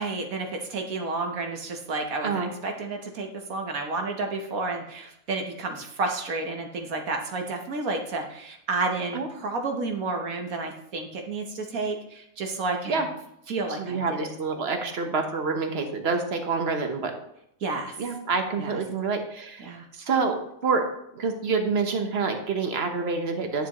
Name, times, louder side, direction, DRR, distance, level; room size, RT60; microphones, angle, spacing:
voice 1, 0.0-13.1 13.5-14.3 17.6-17.9 18.6-18.8 19.6-19.8, right 3 dB, 60° right, 4 dB, 1.4 m, -31 dB
voice 2, 13.8-17.1 18.0-20.9 21.1-23.7, right 4 dB, 45° right, 5 dB, 1.1 m, -27 dB
9.8 x 7.2 x 3.0 m, 0.75 s
omnidirectional pair, 1.7 m